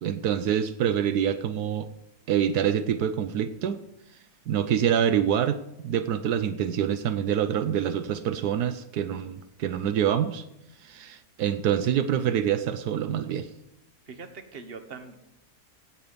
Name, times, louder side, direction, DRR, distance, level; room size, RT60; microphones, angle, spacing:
voice 1, 0.0-1.9 2.3-3.8 4.5-5.6 5.8-10.4 10.8-13.5, right 9 dB, 80° right, 11 dB, 1.2 m, -26 dB
voice 2, 14.1-15.2, right 5 dB, 40° right, 8 dB, 1.4 m, -42 dB
17.0 x 7.7 x 5.2 m, 0.84 s
omnidirectional pair, 1.7 m